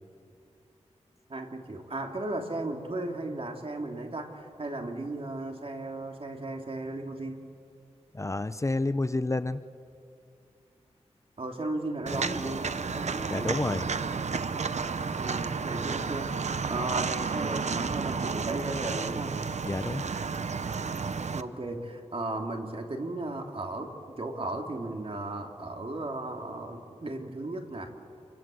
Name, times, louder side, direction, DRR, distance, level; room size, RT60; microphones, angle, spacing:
voice 1, 1.3-7.4 11.4-13.7 15.2-19.3 21.3-27.9, right 2 dB, 55° right, 3 dB, 3.2 m, -35 dB
voice 2, 8.1-9.6 13.3-13.9 19.6-20.0, left 2 dB, 25° left, 12 dB, 0.8 m, -29 dB
Walk footsteps, 12.1-21.4, right 5 dB, 75° right, 0.9 m, -32 dB
28.5 x 24.5 x 7.9 m, 2.5 s
wide cardioid pair, 70°, 12 cm